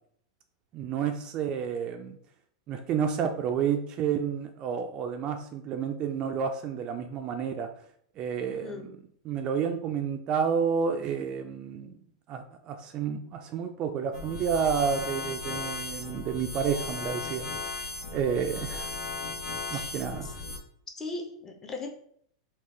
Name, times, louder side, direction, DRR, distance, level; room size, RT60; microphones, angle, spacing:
voice 1, 0.7-2.2 2.7-7.7 8.2-8.9 9.3-12.0 12.3-17.8 18.1-18.9 19.7-20.3, right 7 dB, 30° right, 5 dB, 0.3 m, -30 dB
voice 2, 8.5-9.0 19.7-20.3 21.0-21.9, left 3 dB, 15° left, 3 dB, 0.5 m, -39 dB
sound 1, 14.1-20.6, left 4 dB, 70° left, 1.0 m, -36 dB
3.8 x 2.2 x 3.1 m, 0.62 s
supercardioid pair, 145°, 3 cm